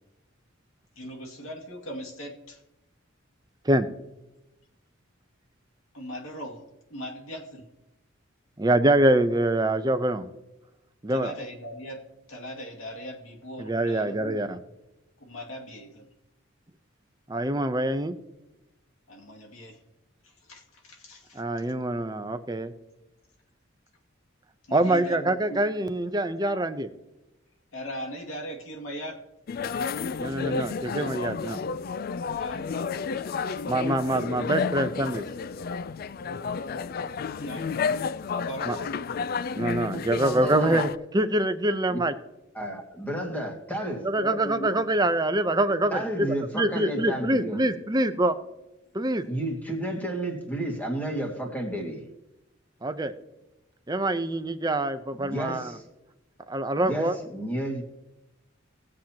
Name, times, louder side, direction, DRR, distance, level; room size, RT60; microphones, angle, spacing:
voice 1, 1.0-2.6 5.9-7.7 11.1-12.0 12.3-14.5 15.2-16.1 19.1-19.8 20.2-21.4 24.6-25.6 27.7-29.2 32.4-32.7 33.2-33.6 37.4-37.7 38.3-38.9 44.2-44.8, equal, 85° left, 0 dB, 2.3 m, -39 dB
voice 2, 8.6-10.3 11.0-11.3 13.6-14.6 17.3-18.2 21.3-22.7 24.7-26.9 30.2-31.6 33.7-35.2 38.7-38.8 39.6-42.1 44.0-48.4 48.9-49.2 52.8-53.1 53.9-55.8 56.5-57.2, right 1 dB, 20° right, 10 dB, 0.7 m, -25 dB
sound 1, 29.5-41.0, left 5 dB, 45° left, 0.3 m, -31 dB
voice 3, 40.2-40.8 41.9-42.0 42.5-44.0 45.9-47.6 49.3-52.0 55.1-55.8 56.8-57.8, right 1 dB, 10° left, 0 dB, 2.0 m, -31 dB
19.5 x 7.6 x 2.9 m, 0.96 s
head